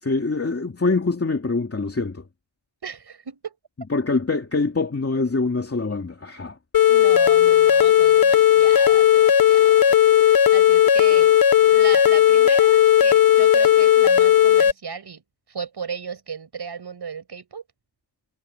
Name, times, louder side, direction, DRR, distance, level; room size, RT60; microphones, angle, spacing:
voice 1, 0.0-2.3 3.9-6.6, left 3 dB, 30° left, 2.8 m, -24 dB
voice 2, 2.8-3.5 6.9-9.9 10.2-11.3 11.7-15.2 15.5-17.6, right 6 dB, 60° right, 6.6 m, -35 dB
sound 1, 6.7-14.7, left 10 dB, 50° left, 1.0 m, -15 dB
wide cardioid pair, 130°, 46 cm